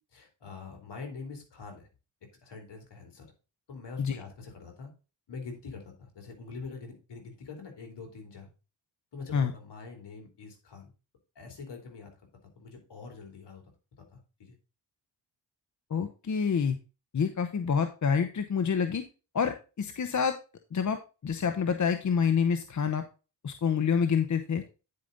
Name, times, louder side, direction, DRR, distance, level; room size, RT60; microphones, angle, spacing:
voice 1, 0.1-1.9 2.4-3.3 3.7-4.9 5.3-8.5 9.1-10.9 11.3-12.1 12.6-13.6 14.1-14.6, left 4 dB, 65° left, 3 dB, 3.1 m, -44 dB
voice 2, 15.9-16.8 17.1-19.0 19.3-20.4 20.7-23.0 23.4-24.6, left 6 dB, 40° left, 8 dB, 0.9 m, -27 dB
9.6 x 5.0 x 3.9 m, 0.32 s
supercardioid pair, 55°, 44 cm